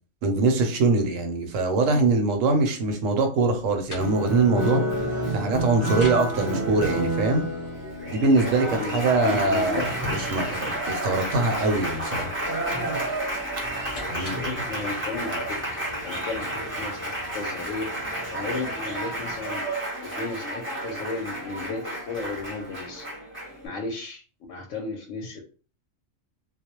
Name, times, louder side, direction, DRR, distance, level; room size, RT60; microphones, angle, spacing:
voice 1, 0.2-7.5 8.1-12.3 14.1-14.5, right 3 dB, 75° right, 5 dB, 1.0 m, -23 dB
sound 1, 3.5-14.7, left 2 dB, 35° left, 0.6 m, -44 dB
Applause, 4.0-23.7, right 1 dB, 10° right, 0.6 m, -30 dB
voice 2, 8.7-9.8 14.1-15.6 16.0-16.5 16.8-17.8 18.3-19.7 20.0-23.0 23.6-24.2 24.5-25.4, left 3 dB, 70° left, 2 dB, 0.9 m, -34 dB
sound 2, 13.6-19.4, right 1 dB, 50° right, 0.8 m, -46 dB
2.4 x 2.0 x 2.8 m, 0.37 s
omnidirectional pair, 1.4 m